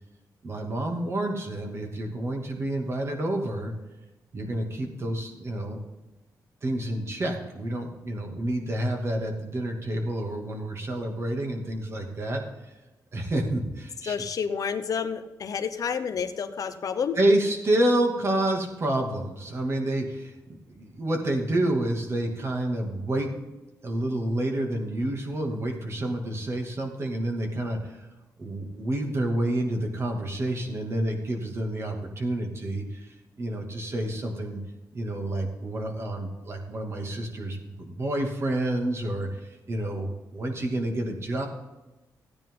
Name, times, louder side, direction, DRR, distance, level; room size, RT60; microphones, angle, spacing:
voice 1, 0.4-3.7 4.3-5.8 6.6-12.4 13.1-14.1 17.2-20.3 20.7-23.3 23.8-27.9 28.4-33.1 33.4-34.6 34.9-39.3 39.7-41.5, right 1 dB, 40° right, 2 dB, 2.6 m, -28 dB
voice 2, 14.0-17.2, left 6 dB, 60° left, 9 dB, 0.9 m, -29 dB
15.0 x 9.7 x 3.9 m, 1.1 s
cardioid pair, 115°, 7 cm